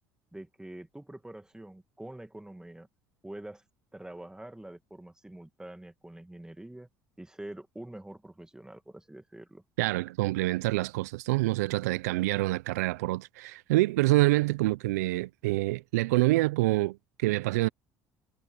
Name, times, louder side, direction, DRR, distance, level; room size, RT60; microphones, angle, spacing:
voice 1, 0.3-2.9 3.2-3.6 3.9-6.9 7.2-9.6, right 1 dB, 10° right, 2.3 m, -45 dB
voice 2, 9.8-17.7, right 20 dB, 80° right, 0.6 m, -26 dB
hypercardioid pair, 65°, 9 cm